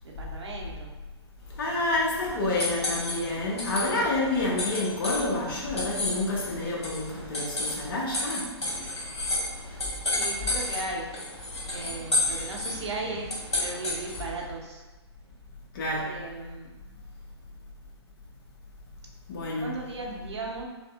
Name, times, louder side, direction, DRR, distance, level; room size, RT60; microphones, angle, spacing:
voice 1, 0.0-1.0 10.1-11.1 11.7-14.8 16.0-16.7 19.6-20.7, right 2 dB, 80° right, -1 dB, 0.7 m, -36 dB
sound 1, 1.5-14.4, left 2 dB, 75° left, 1.4 m, -32 dB
voice 2, 1.6-8.6 11.8-11.9 15.7-16.2 19.3-19.8, left 2 dB, 50° left, -3 dB, 0.9 m, -29 dB
5.1 x 2.0 x 2.4 m, 1.2 s
figure-of-eight pair, 125°, 14 cm